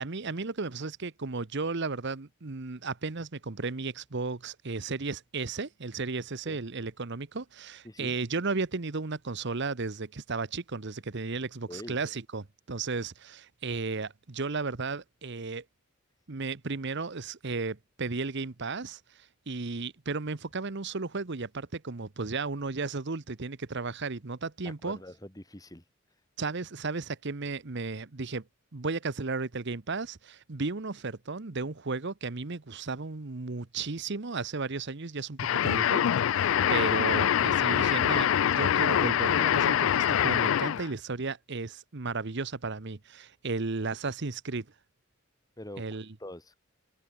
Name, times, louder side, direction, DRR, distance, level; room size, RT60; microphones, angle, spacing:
voice 1, 0.0-15.6 16.3-25.0 26.4-28.4 28.7-36.0 36.3-44.7 45.8-46.1, right 3 dB, 60° right, 1.0 m, -34 dB
voice 2, 7.8-8.2 11.7-12.0 24.6-25.8 36.5-36.6 45.6-45.9 46.2-46.5, left 1 dB, 20° left, 2.7 m, -44 dB
sound 1, 35.4-40.9, left 10 dB, 70° left, 0.3 m, -25 dB
head